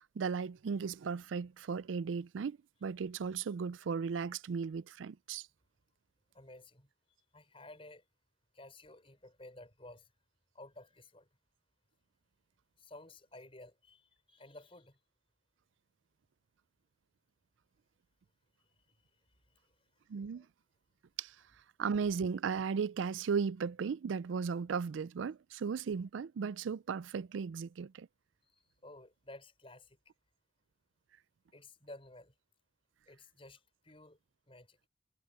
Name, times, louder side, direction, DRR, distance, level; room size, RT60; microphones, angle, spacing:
voice 1, 0.0-5.5 20.1-20.5 21.2-21.4 21.8-28.1, right 6 dB, 85° right, 0.4 m, -36 dB
voice 2, 6.3-6.9 7.3-8.0 8.5-10.1 10.5-11.3 12.8-15.0 18.9-19.0 19.5-19.7 20.3-20.5 28.5-30.0 31.5-32.3 33.1-34.2 34.5-34.8, left 2 dB, 30° left, 5.8 m, -54 dB
head